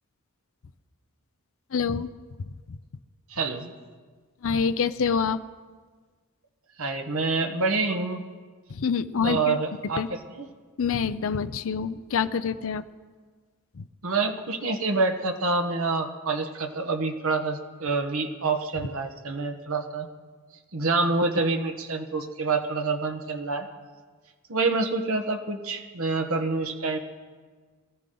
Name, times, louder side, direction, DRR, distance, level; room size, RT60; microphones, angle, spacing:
voice 1, 1.7-2.1 2.4-2.5 4.4-5.4 8.7-9.6 10.0-10.1 10.8-12.8 13.8-13.9, left 6 dB, 65° left, 12 dB, 0.5 m, -26 dB
voice 2, 3.3-3.7 6.8-8.2 9.1-10.5 14.0-20.1 20.7-23.7 24.5-27.0, right 3 dB, 70° right, 4 dB, 1.3 m, -27 dB
23.0 x 14.0 x 3.9 m, 1.5 s
head